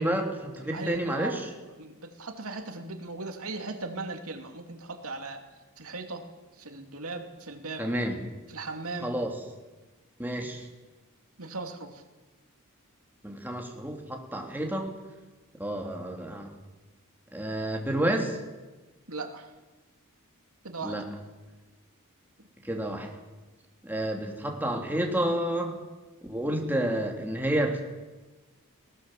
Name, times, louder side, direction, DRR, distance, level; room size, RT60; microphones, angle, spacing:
voice 1, 0.0-1.5 7.8-8.2 9.0-9.3 10.2-10.7 13.2-14.9 15.6-16.5 17.3-18.4 20.8-21.1 22.6-23.1 23.8-25.8 26.2-27.8, right 1 dB, 10° right, 1 dB, 3.3 m, -30 dB
voice 2, 0.6-1.4 1.8-5.4 5.8-6.2 6.6-7.9 8.5-9.1 11.4-12.0 19.1-19.5 20.6-20.9, right 3 dB, 70° right, 5 dB, 2.7 m, -38 dB
19.5 x 19.0 x 7.7 m, 1.2 s
head